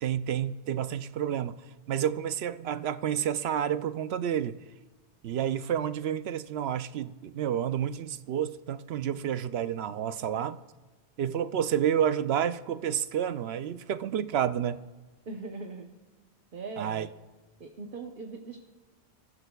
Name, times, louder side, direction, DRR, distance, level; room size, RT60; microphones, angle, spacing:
voice 1, 0.0-1.6 1.9-4.6 5.2-10.6 11.2-14.8 16.8-17.1, right 9 dB, 70° right, 13 dB, 0.8 m, -30 dB
voice 2, 15.3-15.9 16.5-17.1 17.6-18.6, right 4 dB, 50° right, 3 dB, 1.1 m, -40 dB
25.5 x 14.5 x 2.3 m, 1.2 s
omnidirectional pair, 1.1 m